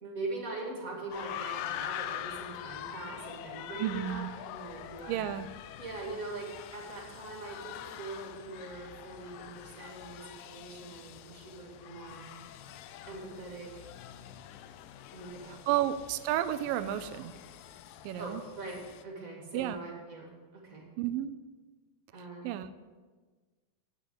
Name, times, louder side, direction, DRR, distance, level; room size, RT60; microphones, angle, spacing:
voice 1, 0.0-5.2 5.8-12.3 13.1-13.8 15.1-15.6 18.2-20.9 22.1-22.5, right 2 dB, 25° right, -1 dB, 1.9 m, -42 dB
sound 1, 1.1-19.0, left 11 dB, 85° left, 2.7 m, -44 dB
voice 2, 3.7-4.3 5.1-5.5 15.7-17.3 18.0-18.4 19.5-19.8 21.0-21.4 22.4-22.7, right 12 dB, 85° right, 13 dB, 2.0 m, -31 dB
8.9 x 8.8 x 8.5 m, 1.4 s
omnidirectional pair, 4.5 m